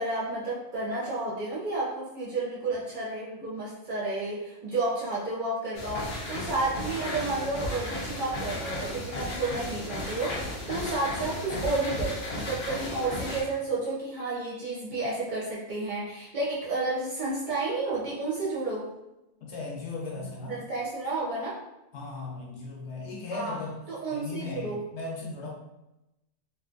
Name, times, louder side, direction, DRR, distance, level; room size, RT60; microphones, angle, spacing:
voice 1, 0.0-10.4 10.7-18.9 20.2-21.6 23.3-23.6 23.9-24.8, right 2 dB, 50° right, -6 dB, 0.6 m, -31 dB
sound 1, 5.7-13.4, left 1 dB, 50° left, 0.6 m, -34 dB
voice 2, 19.4-20.6 21.9-23.8 24.1-25.5, left 3 dB, 70° left, -2 dB, 1.0 m, -37 dB
2.5 x 2.4 x 2.4 m, 0.93 s
omnidirectional pair, 1.3 m